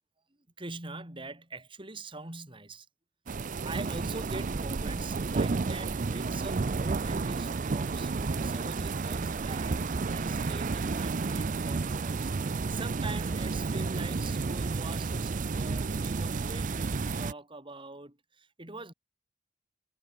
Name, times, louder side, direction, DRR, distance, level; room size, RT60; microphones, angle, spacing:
voice 1, 0.6-2.9 3.6-9.8 10.1-18.9, right 2 dB, 30° right, 4.3 m, -43 dB
sound 1, 3.3-17.3, right 4 dB, 45° right, 0.5 m, -31 dB
head